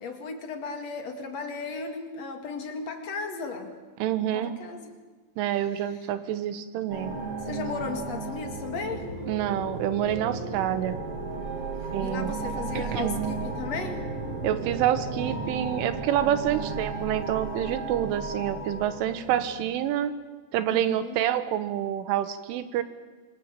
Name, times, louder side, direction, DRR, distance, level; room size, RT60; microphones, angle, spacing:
voice 1, 0.0-3.7 4.2-4.9 5.9-6.0 7.4-9.1 12.0-14.1 20.7-21.2, left 4 dB, 45° left, 5 dB, 2.6 m, -35 dB
voice 2, 4.0-4.6 5.4-7.2 9.3-11.0 11.9-12.3 12.8-13.2 14.4-20.1 20.5-22.8, right 11 dB, 90° right, 12 dB, 3.8 m, -27 dB
sound 1, 6.9-19.6, right 3 dB, 35° right, 3.6 m, -34 dB
26.0 x 20.5 x 8.9 m, 1.3 s
omnidirectional pair, 5.5 m